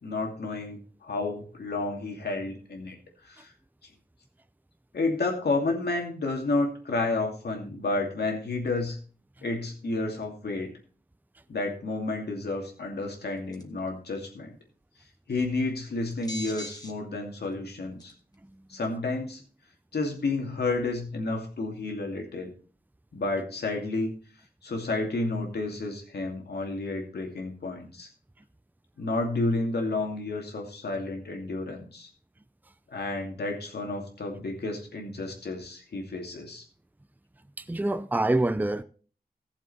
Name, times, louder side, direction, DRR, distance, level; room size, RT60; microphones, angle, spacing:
voice 1, 0.0-3.0 3.2-3.5 4.9-9.0 9.4-10.7 11.5-14.6 15.3-18.1 18.7-19.4 19.9-22.5 23.1-24.1 24.6-28.1 29.0-32.1 32.9-36.6, left 2 dB, 90° left, 2.6 m, -31 dB
sound 1, 13.5-13.8 16.1-16.9 17.5-17.6 18.0-18.3, left 1 dB, 25° left, 2.2 m, -39 dB
voice 2, 37.6-38.8, right 2 dB, 10° right, 0.6 m, -26 dB
15.5 x 7.3 x 4.2 m
wide cardioid pair, 60°, 16 cm